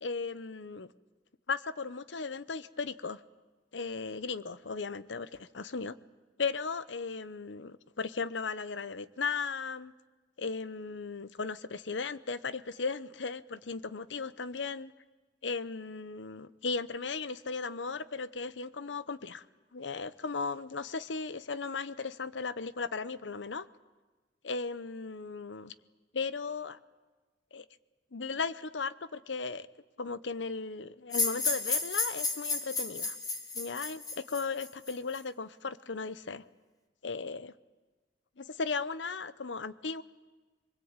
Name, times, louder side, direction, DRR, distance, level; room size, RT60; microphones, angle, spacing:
voice 1, 0.0-0.9 1.5-3.2 3.7-6.0 6.4-9.9 10.4-14.9 15.4-19.4 19.7-23.7 24.4-25.7 26.1-26.8 27.5-27.7 28.1-29.7 30.0-33.2 33.5-36.4 37.0-37.5 38.4-40.0, left 4 dB, 80° left, 16 dB, 0.9 m, -36 dB
sound 1, 31.1-35.2, left 3 dB, 20° left, 2.4 m, -32 dB
24.5 x 22.0 x 8.9 m, 1.3 s
head